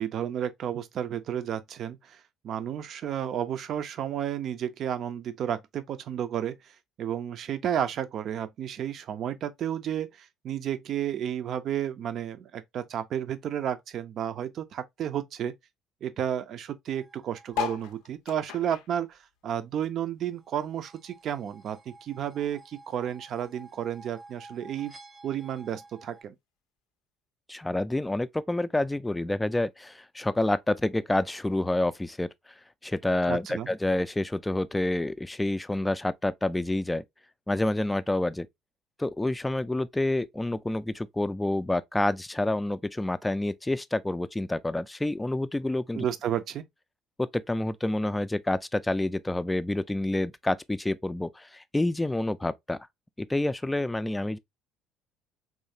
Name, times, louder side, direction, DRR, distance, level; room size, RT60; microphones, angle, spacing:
voice 1, 0.0-6.7 7.0-15.5 16.0-24.9 25.2-26.3 33.3-33.7 45.9-46.6, right 9 dB, 55° right, 0.5 m, -32 dB
sound 1, 16.9-18.0 20.4-26.2, right 3 dB, 15° right, 0.7 m, -52 dB
sound 2, 17.5-20.3 20.6-22.1 22.6-22.7 22.9-23.0 23.2-23.6 24.3-24.4, left 9 dB, 70° left, 0.5 m, -37 dB
voice 2, 27.5-32.3 32.8-37.0 37.5-38.5 39.0-46.1 47.2-52.8 53.2-54.4, left 1 dB, 10° left, 0.4 m, -28 dB
3.7 x 3.1 x 2.6 m
hypercardioid pair, 60°, 0 cm